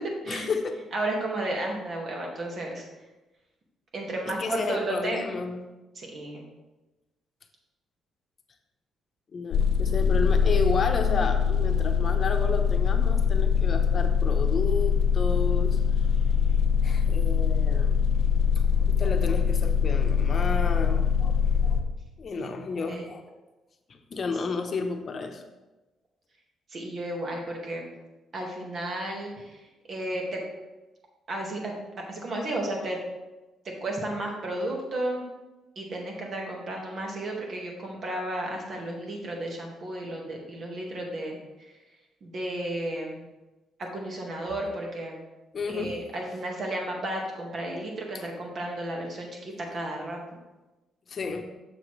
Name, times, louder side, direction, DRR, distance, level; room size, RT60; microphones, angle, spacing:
voice 1, 0.3-0.7 4.3-5.6 9.3-15.8 16.8-17.9 18.8-21.8 22.2-23.4 23.9-25.4 45.5-46.0 51.1-51.4, left 4 dB, 45° left, 5 dB, 0.9 m, -32 dB
voice 2, 0.9-2.8 3.9-5.4 6.0-6.4 22.3-22.5 22.9-23.0 26.7-27.9 28.3-29.6 29.9-30.4 31.3-31.8 32.1-33.0 33.8-35.2 35.8-41.4 42.2-43.2 43.8-45.2 45.7-50.2, right 1 dB, 50° right, 0 dB, 1.8 m, -33 dB
sound 1, 9.5-21.8, left 7 dB, 80° left, 0.7 m, -23 dB
6.8 x 6.8 x 3.2 m, 1.1 s
cardioid pair, 90°, 0 cm